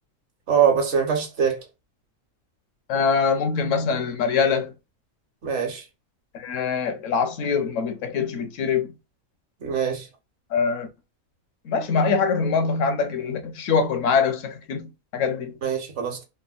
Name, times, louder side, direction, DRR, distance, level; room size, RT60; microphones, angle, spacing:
voice 1, 0.5-1.6 5.4-5.8 9.6-10.1 15.6-16.2, right 7 dB, 60° right, 1.1 m, -23 dB
voice 2, 2.9-4.7 6.3-8.9 10.5-10.9 11.6-15.5, left 5 dB, 70° left, 0.9 m, -23 dB
3.4 x 2.2 x 2.2 m
omnidirectional pair, 1.4 m